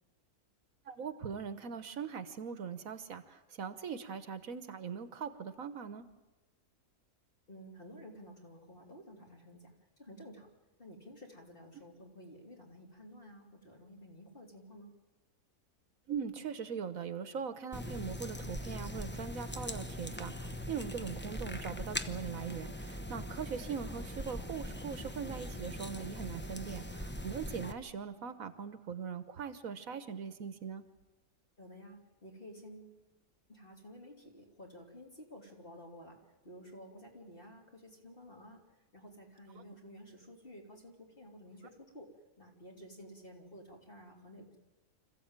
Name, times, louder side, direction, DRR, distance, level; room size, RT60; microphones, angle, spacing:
voice 1, 0.9-6.1 16.1-30.8, right 6 dB, 65° right, 12 dB, 1.4 m, -41 dB
voice 2, 7.5-10.5 10.8-14.9 31.6-33.0 33.5-42.1 42.4-44.6, equal, 35° left, 1 dB, 3.4 m, -52 dB
sound 1, 17.7-27.7, left 1 dB, 10° left, 0.7 m, -41 dB
26.0 x 14.5 x 8.9 m, 1.1 s
omnidirectional pair, 1.6 m